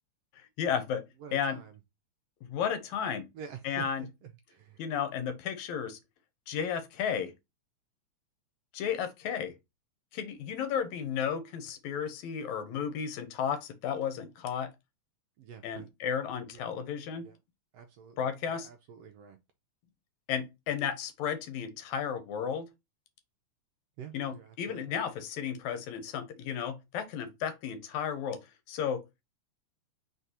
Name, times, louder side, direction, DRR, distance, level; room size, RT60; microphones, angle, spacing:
voice 1, 0.6-1.0 1.3-1.6 2.4-3.3 3.6-4.1 4.8-6.0 6.5-7.3 8.7-9.5 10.1-14.7 15.6-17.3 18.2-18.7 20.3-22.7 24.1-28.4 28.7-29.0, left 8 dB, 80° left, 2.2 m, -33 dB
voice 2, 1.2-1.8 3.3-4.8 15.4-15.9 16.5-16.7 17.2-17.4 17.7-19.4 24.0-25.0, right 7 dB, 75° right, 1.6 m, -48 dB
4.6 x 4.2 x 2.7 m
omnidirectional pair, 3.3 m